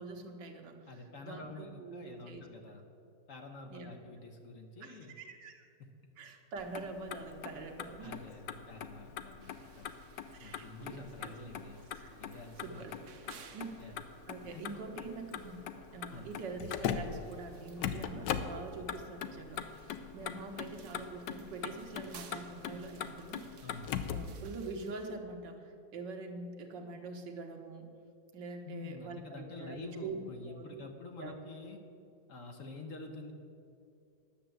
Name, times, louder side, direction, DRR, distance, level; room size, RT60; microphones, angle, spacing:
voice 1, 0.0-2.4 3.7-3.9 4.8-5.6 6.2-8.2 10.3-11.3 11.9-13.1 13.4-13.9 14.3-15.6 15.9-23.6 24.1-27.9 28.3-30.2 30.5-30.8 31.2-31.3, right 3 dB, 85° right, 3 dB, 1.8 m, -45 dB
voice 2, 0.9-2.8 3.3-5.1 5.8-5.9 8.0-9.9 10.4-11.8 12.2-12.8 13.8-14.0 14.5-15.0 16.1-16.3 23.6-23.9 28.6-31.8 32.3-33.3, left 3 dB, 55° left, 4 dB, 1.2 m, -48 dB
Motor vehicle (road), 6.6-24.4, left 8 dB, 80° left, 1.3 m, -41 dB
sound 1, 9.4-25.1, right 7 dB, 55° right, 0.9 m, -60 dB
10.5 x 6.9 x 7.6 m, 2.6 s
omnidirectional pair, 1.9 m